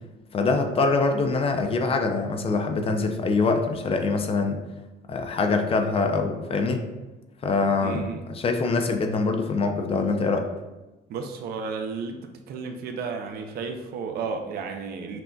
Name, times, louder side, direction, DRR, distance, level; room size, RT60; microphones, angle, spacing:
voice 1, 0.3-4.6 5.1-6.8 7.4-8.0 8.3-10.4, left 3 dB, 35° left, 6 dB, 0.4 m, -24 dB
voice 2, 7.8-8.3 11.1-15.2, right 5 dB, 65° right, 5 dB, 0.5 m, -33 dB
5.9 x 2.5 x 2.2 m, 1.1 s
cardioid pair, 110°, 17 cm